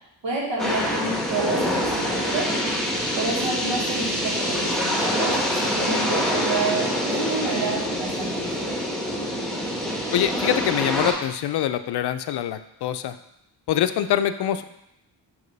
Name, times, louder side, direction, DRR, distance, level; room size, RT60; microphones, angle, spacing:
voice 1, 0.2-2.5 3.2-8.7, right 3 dB, 80° right, -4 dB, 1.6 m, -29 dB
sound 1, 0.6-11.1, equal, ahead, 1.3 m, -25 dB
voice 2, 10.1-13.2 13.7-14.6, left 10 dB, 65° left, 11 dB, 0.5 m, -24 dB
5.9 x 3.0 x 5.2 m, 0.80 s
cardioid pair, 85°, 43 cm